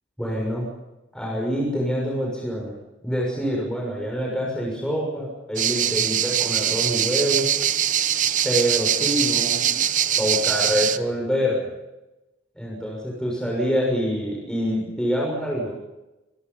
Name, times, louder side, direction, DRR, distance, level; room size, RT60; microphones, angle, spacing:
voice 1, 0.2-0.6 1.1-2.7 3.0-7.5 8.4-9.8 10.2-11.6 12.6-15.7, equal, 5° left, -3 dB, 6.6 m, -26 dB
sound 1, 5.6-11.0, right 10 dB, 45° right, 0.9 m, -22 dB
26.5 x 23.5 x 5.7 m, 1.0 s
head